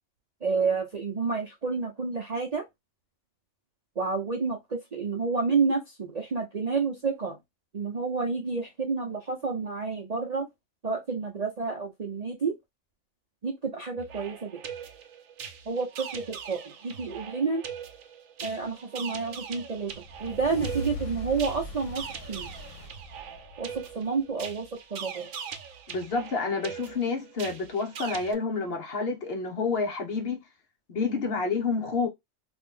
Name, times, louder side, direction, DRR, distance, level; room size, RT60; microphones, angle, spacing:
voice 1, 0.4-2.6 4.0-7.4 7.7-10.5 10.8-12.6 13.4-14.5 15.7-17.6 18.4-22.5 23.6-25.3, right 4 dB, 45° right, 0.5 m, -30 dB
sound 1, 14.0-28.3, right 7 dB, 80° right, 1.0 m, -42 dB
sound 2, 19.8-24.4, equal, 70° left, 1.2 m, -40 dB
voice 2, 25.9-30.4 30.9-32.1, left 4 dB, 50° left, 1.0 m, -29 dB
3.0 x 2.6 x 3.6 m
omnidirectional pair, 1.4 m